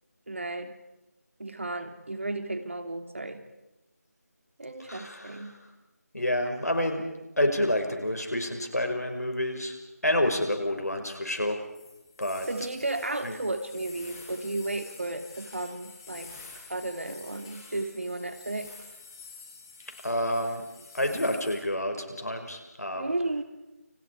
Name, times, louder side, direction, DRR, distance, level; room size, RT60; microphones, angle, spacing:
voice 1, 0.3-0.7 1.4-3.5 4.6-5.6 12.5-16.3 16.7-18.7 23.0-23.4, right 2 dB, 50° right, 8 dB, 2.9 m, -33 dB
voice 2, 4.9-5.6 6.1-7.1 7.4-9.8 10.0-11.6 12.2-12.5 13.2-13.4 20.0-20.6 20.9-23.1, left 1 dB, 70° left, 5 dB, 5.8 m, -28 dB
sound 1, 11.7-21.6, left 4 dB, 15° left, 5.3 m, -48 dB
29.5 x 29.0 x 4.9 m, 0.98 s
figure-of-eight pair, 165°, 9 cm